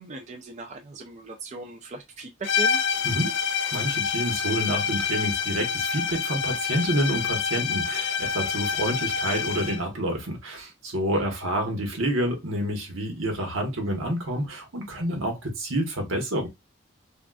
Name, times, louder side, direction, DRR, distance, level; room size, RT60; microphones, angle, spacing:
voice 1, 0.0-2.8 11.1-11.2, right 3 dB, 35° right, 0.4 m, -38 dB
sound 1, 2.4-9.9, left 7 dB, 60° left, 0.4 m, -27 dB
voice 2, 3.0-3.3 3.7-16.5, right 1 dB, 85° right, 1.1 m, -28 dB
3.7 x 2.4 x 2.3 m
head